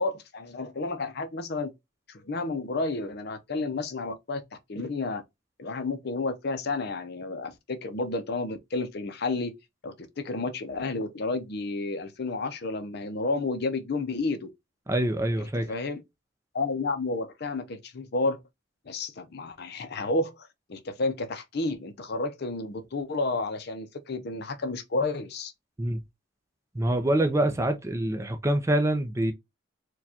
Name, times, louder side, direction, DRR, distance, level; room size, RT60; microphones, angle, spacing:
voice 1, 0.0-1.7 2.1-4.4 4.7-5.2 5.6-9.5 9.8-14.5 15.6-16.0 16.5-18.4 18.9-25.5, left 3 dB, 50° left, 0.6 m, -31 dB
voice 2, 14.9-15.7 25.8-26.0 26.7-29.3, right 1 dB, 15° right, 0.4 m, -25 dB
4.5 x 2.3 x 2.7 m
head